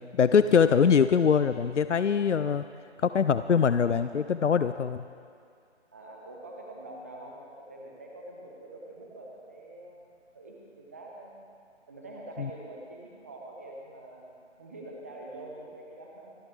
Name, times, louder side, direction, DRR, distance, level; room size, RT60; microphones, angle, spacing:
voice 1, 0.0-2.6 3.0-5.0 12.4-12.5, left 6 dB, 80° left, 12 dB, 0.5 m, -23 dB
voice 2, 3.7-4.3 5.9-10.1 10.3-11.3 11.9-14.3 14.6-16.4, right 1 dB, 15° right, -1 dB, 0.8 m, -45 dB
27.0 x 10.0 x 3.3 m, 2.3 s
figure-of-eight pair, 150°, 36 cm